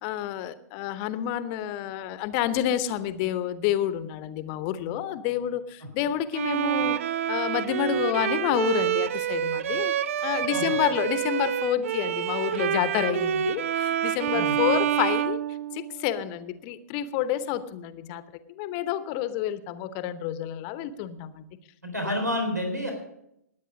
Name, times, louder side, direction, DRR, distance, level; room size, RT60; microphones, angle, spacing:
voice 1, 0.0-7.0 7.3-9.9 10.2-15.4 15.7-18.2 18.5-21.5 22.0-22.2, left 11 dB, 30° left, 13 dB, 0.9 m, -29 dB
Bowed string instrument, 6.3-16.1, right 10 dB, 50° right, 0.4 m, -27 dB
voice 2, 21.8-22.9, left 1 dB, 85° right, 3 dB, 3.8 m, -29 dB
19.5 x 9.0 x 5.2 m, 0.78 s
figure-of-eight pair, 115°, 9 cm